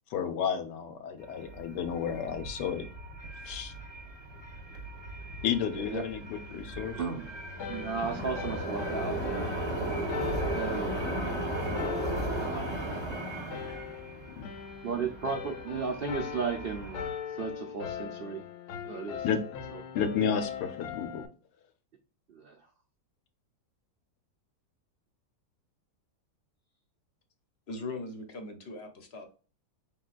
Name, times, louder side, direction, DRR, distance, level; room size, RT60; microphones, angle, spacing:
voice 1, 0.1-2.9 3.4-3.7 5.4-6.9 14.3-14.5 19.2-19.4 19.9-21.2, left 7 dB, 85° left, 8 dB, 1.4 m, -32 dB
sound 1, 1.2-17.1, right 1 dB, 20° right, 0.8 m, -36 dB
voice 2, 5.7-6.0 6.9-7.3 7.7-9.5 10.5-11.2 12.4-13.2 14.8-17.1 17.4-18.4 18.8-19.3 19.7-19.8 22.3-22.5, right 5 dB, 65° right, 3 dB, 0.5 m, -35 dB
sound 2, 7.6-21.3, left 7 dB, 70° left, 1.1 m, -40 dB
voice 3, 27.7-29.3, left 2 dB, 45° left, 6 dB, 0.9 m, -40 dB
5.0 x 3.8 x 2.4 m, 0.37 s
omnidirectional pair, 1.8 m